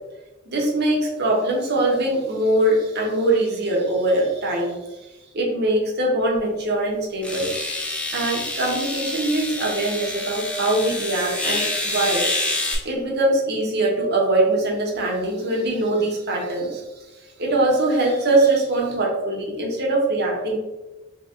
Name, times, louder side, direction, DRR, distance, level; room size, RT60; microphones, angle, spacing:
voice 1, 0.5-5.1 5.3-7.5 8.1-12.3 12.8-16.8 17.4-20.6, right 2 dB, 55° right, -1 dB, 0.9 m, -22 dB
sound 1, 6.4-6.5 7.2-12.8, left 1 dB, 5° left, 0.5 m, -27 dB
3.0 x 2.9 x 3.6 m, 1.1 s
head